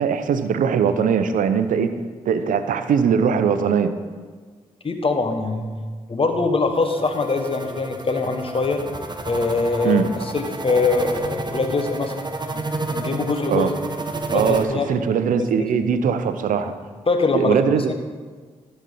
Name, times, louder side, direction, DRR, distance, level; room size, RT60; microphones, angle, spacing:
voice 1, 0.0-1.9 2.3-3.9 9.8-10.0 13.5-13.7 14.3-16.7 17.3-17.9, right 7 dB, 75° right, 10 dB, 0.6 m, -20 dB
voice 2, 4.8-5.7 6.1-8.8 9.3-12.1 12.5-12.6 12.9-13.7 14.3-14.9 15.6-15.7 17.1-17.9, left 3 dB, 40° left, 5 dB, 1.3 m, -23 dB
sound 1, 6.7-14.6, right 2 dB, 30° right, 1.0 m, -31 dB
12.0 x 4.4 x 5.5 m, 1.5 s
supercardioid pair, 40°, 14 cm